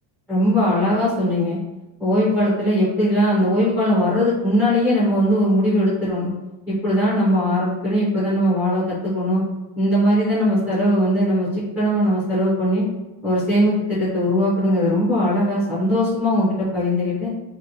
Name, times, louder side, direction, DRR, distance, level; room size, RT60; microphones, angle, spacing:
voice 1, 0.3-1.6 2.0-6.3 6.7-9.4 9.8-11.5 11.8-12.9 13.2-17.3, equal, ahead, -13 dB, 0.3 m, -20 dB
2.8 x 2.0 x 2.5 m, 1.1 s
cardioid pair, 175°, 44 cm